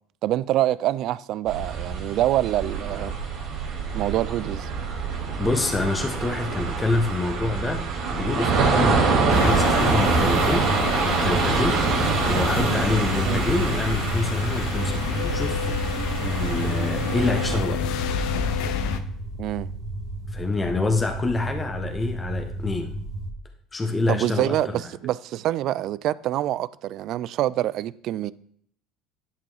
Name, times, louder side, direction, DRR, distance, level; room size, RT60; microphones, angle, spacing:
voice 1, 0.2-3.1 3.9-4.7 13.3-13.4 19.4-19.7 24.1-28.3, right 13 dB, 60° right, 0.3 m, -25 dB
sound 1, 1.5-17.6, right 4 dB, 75° right, 2.3 m, -25 dB
voice 2, 5.4-10.7 11.0-18.0 20.3-22.9 23.7-24.8, left 3 dB, 20° left, 0.9 m, -27 dB
sound 2, 8.9-23.3, right 2 dB, 40° right, 1.5 m, -33 dB
sound 3, 9.3-19.0, left 7 dB, 75° left, 0.7 m, -29 dB
10.5 x 5.2 x 3.3 m
hypercardioid pair, 75°, 0 cm